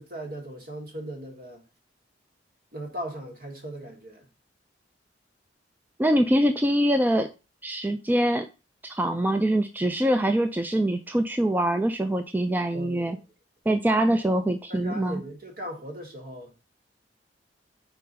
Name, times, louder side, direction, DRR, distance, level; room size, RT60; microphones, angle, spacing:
voice 1, 0.0-1.6 2.7-4.3 12.7-13.3 14.1-14.2 14.7-16.5, equal, 55° right, 1.7 m, -38 dB
voice 2, 6.0-7.3 7.6-8.5 8.9-13.2 13.7-15.2, right 1 dB, 10° right, 0.4 m, -24 dB
4.6 x 3.9 x 5.4 m
head